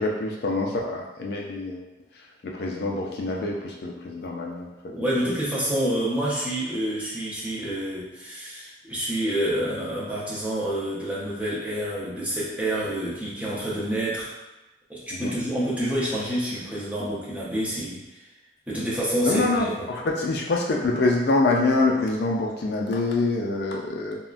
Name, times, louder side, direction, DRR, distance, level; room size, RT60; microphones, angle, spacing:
voice 1, 0.0-1.9 2.4-4.7 15.1-15.4 19.2-24.2, left 2 dB, 55° left, -1 dB, 0.3 m, -25 dB
voice 2, 4.9-14.3 14.9-18.2 18.7-19.9, right 1 dB, 10° right, -8 dB, 0.6 m, -28 dB
3.5 x 2.1 x 2.4 m, 1.0 s
head